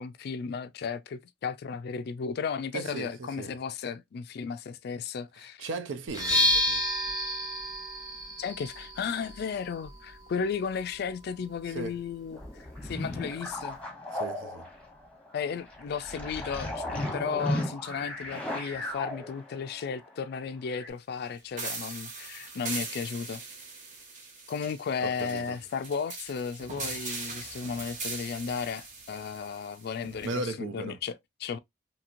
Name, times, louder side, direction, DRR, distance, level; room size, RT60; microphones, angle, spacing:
voice 1, 0.0-5.7 8.4-12.4 12.8-13.8 15.3-23.4 24.5-31.6, left 6 dB, 55° left, 0.3 m, -34 dB
voice 2, 2.7-3.5 5.6-6.9 11.7-12.0 14.1-14.6 25.0-25.6 30.2-31.0, right 3 dB, 80° right, 0.5 m, -37 dB
sound 1, 6.1-13.8, left 1 dB, 20° right, 1.1 m, -32 dB
sound 2, 12.3-20.2 20.7-20.9, left 1 dB, 5° left, 0.9 m, -36 dB
sound 3, 21.6-30.4, right 4 dB, 45° right, 0.9 m, -40 dB
2.9 x 2.8 x 2.4 m
head